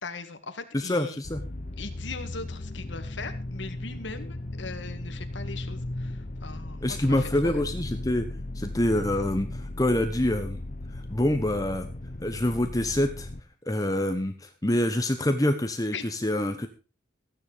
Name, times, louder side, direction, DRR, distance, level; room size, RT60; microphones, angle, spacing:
voice 1, 0.0-1.2 1.8-7.6 15.9-16.1, left 4 dB, 70° left, 7 dB, 2.1 m, -40 dB
voice 2, 0.7-1.4 6.8-8.3 8.5-10.6 10.9-11.9 12.2-13.3 13.7-16.7, left 1 dB, 20° left, 7 dB, 1.1 m, -26 dB
sound 1, 1.2-13.4, left 1 dB, 40° left, 0.9 m, -36 dB
15.0 x 10.0 x 5.1 m, 0.35 s
head